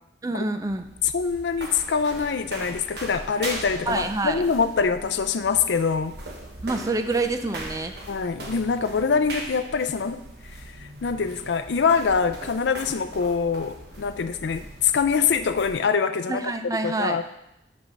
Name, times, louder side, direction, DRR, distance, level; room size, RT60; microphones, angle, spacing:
voice 1, 0.2-0.9 3.9-4.4 6.6-7.9 16.3-17.2, right 2 dB, 20° right, 8 dB, 0.4 m, -27 dB
sound 1, 0.5-15.8, right 1 dB, 70° right, 1.3 m, -40 dB
voice 2, 1.1-6.2 8.1-10.3 11.0-16.5 16.8-17.2, left 5 dB, 85° left, 11 dB, 0.5 m, -24 dB
5.4 x 5.2 x 6.1 m, 0.85 s
head